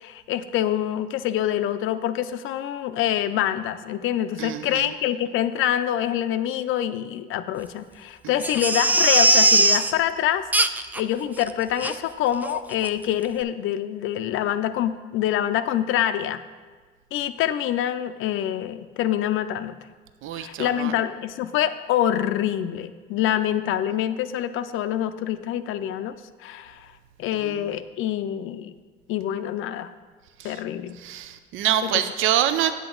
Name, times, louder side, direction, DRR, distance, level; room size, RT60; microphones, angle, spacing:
voice 1, 0.0-10.5 11.0-16.4 17.1-19.8 20.3-26.1 26.4-26.9 27.2-28.7 29.1-29.9 30.4-31.0 31.8-32.0, left 11 dB, 85° left, 12 dB, 0.4 m, -26 dB
voice 2, 4.4-4.9 20.2-20.9 27.5-27.6 30.4-30.5 31.0-32.7, right 11 dB, 85° right, 10 dB, 0.5 m, -25 dB
Crying sobbing, 8.4-9.9 10.5-11.0 11.4-11.5 11.8-11.9 12.4-12.6 12.8-12.9, right 2 dB, 10° right, 0.3 m, -19 dB
8.1 x 7.9 x 3.8 m, 1.5 s
cardioid pair, 90°, 20 cm